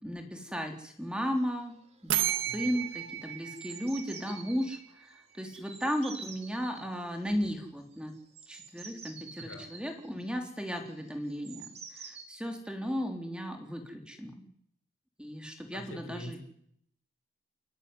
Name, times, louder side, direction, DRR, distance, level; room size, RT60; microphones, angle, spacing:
voice 1, 0.0-1.7 2.0-8.1 8.5-14.4 15.2-16.4, equal, 5° right, 4 dB, 3.5 m, -35 dB
sound 1, 0.9-1.0 1.2-1.6 1.9-2.2 2.5-4.8 5.5-6.9 7.9-12.2, right 5 dB, 35° right, 3.4 m, -48 dB
sound 2, 2.1-4.8, right 11 dB, 80° right, 1.7 m, -33 dB
voice 2, 9.4-9.7 15.7-16.4, equal, 85° left, 4 dB, 6.8 m, -44 dB
29.0 x 19.5 x 9.8 m, 0.71 s
head